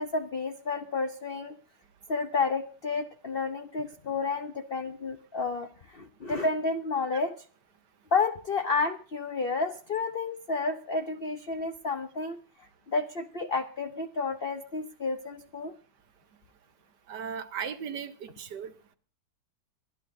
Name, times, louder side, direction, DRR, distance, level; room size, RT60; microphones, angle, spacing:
voice 1, 0.0-1.6 2.1-7.4 8.1-12.4 12.9-15.7, left 4 dB, 60° left, 7 dB, 0.6 m, -31 dB
voice 2, 17.1-18.9, right 7 dB, 65° right, 9 dB, 1.4 m, -37 dB
24.0 x 11.5 x 2.7 m, 0.39 s
omnidirectional pair, 2.1 m